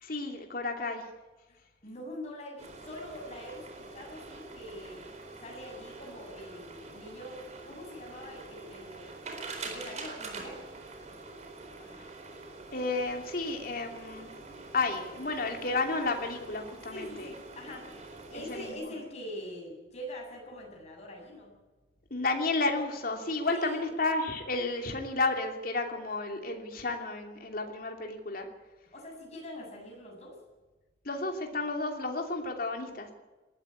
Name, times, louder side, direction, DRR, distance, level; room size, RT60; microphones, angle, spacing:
voice 1, 0.0-1.0 12.7-14.3 14.7-17.3 18.3-18.9 22.1-28.5 31.0-33.1, left 3 dB, 55° left, 3 dB, 2.9 m, -32 dB
voice 2, 1.5-5.0 5.4-9.1 9.6-10.7 11.8-12.1 16.9-17.9 18.3-21.5 23.4-23.8 28.9-30.4, left 1 dB, 40° left, 0 dB, 7.8 m, -44 dB
sound 1, 2.6-18.7, right 3 dB, 40° right, 4.1 m, -45 dB
20.0 x 14.0 x 9.9 m, 1.2 s
head